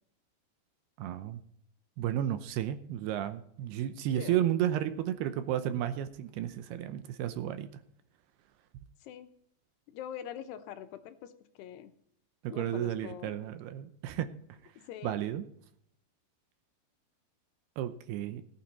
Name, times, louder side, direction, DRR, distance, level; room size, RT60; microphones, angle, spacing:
voice 1, 1.0-1.4 2.0-7.7 12.4-14.3 15.0-15.5 17.8-18.4, right 11 dB, 80° right, 10 dB, 2.6 m, -32 dB
voice 2, 4.1-4.4 9.0-9.3 9.9-11.9 12.5-13.4 14.9-15.2, left 10 dB, 80° left, 9 dB, 3.0 m, -44 dB
17.5 x 8.8 x 4.2 m, 0.67 s
omnidirectional pair, 4.9 m